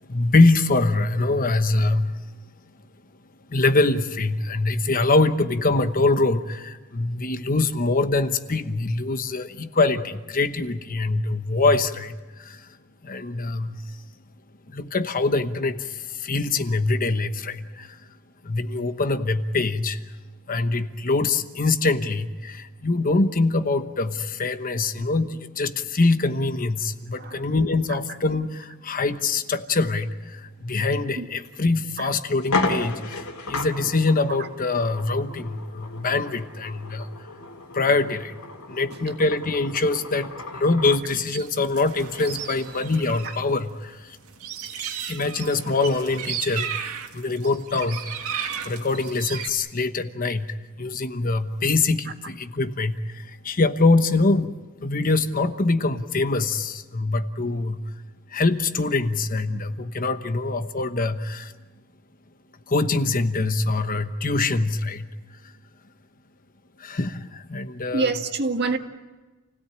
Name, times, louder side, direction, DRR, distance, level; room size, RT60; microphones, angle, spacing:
voice 1, 0.1-2.2 3.5-12.7 13.0-14.0 14.7-18.0 18.4-20.0 20.5-37.1 37.7-38.3 38.7-44.2 45.1-46.8 47.1-48.0 48.6-54.5 54.8-57.8 58.3-61.5 62.7-65.1 66.8-68.1, left 3 dB, 40° left, 9 dB, 1.1 m, -24 dB
sound 1, 31.4-31.6 32.0-32.1 32.4-41.1, left 3 dB, 85° left, 2.8 m, -33 dB
sound 2, 41.3-43.4 43.7-49.5, right 8 dB, 85° right, 2.0 m, -34 dB
voice 2, 67.9-68.8, right 3 dB, 50° right, 5 dB, 1.8 m, -26 dB
28.5 x 17.0 x 8.8 m, 1.2 s
head